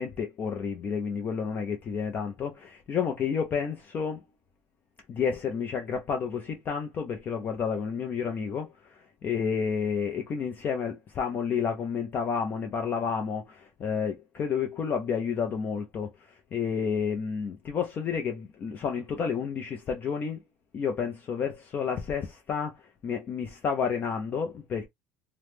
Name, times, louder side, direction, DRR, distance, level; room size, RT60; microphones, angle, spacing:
voice 1, 0.0-4.2 5.1-20.4 20.7-24.9, left 6 dB, 30° left, 0.5 m, -30 dB
2.9 x 2.0 x 3.3 m
cardioid pair, 165°, 7 cm